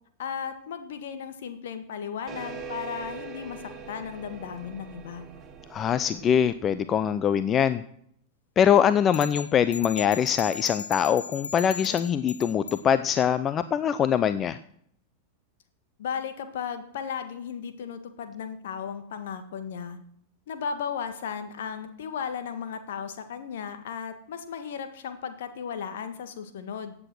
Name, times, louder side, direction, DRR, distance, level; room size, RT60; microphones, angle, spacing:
voice 1, 0.2-5.3 16.0-20.0 20.5-26.9, left 7 dB, 60° left, 8 dB, 1.7 m, -35 dB
sound 1, 2.3-7.3, right 5 dB, 20° right, 2.7 m, -42 dB
voice 2, 5.7-7.8 8.6-14.6, left 8 dB, 25° left, 13 dB, 0.5 m, -23 dB
sound 2, 9.1-12.8, left 5 dB, 75° left, 0.6 m, -37 dB
15.5 x 8.6 x 6.2 m, 0.68 s
figure-of-eight pair, 90°, 0 cm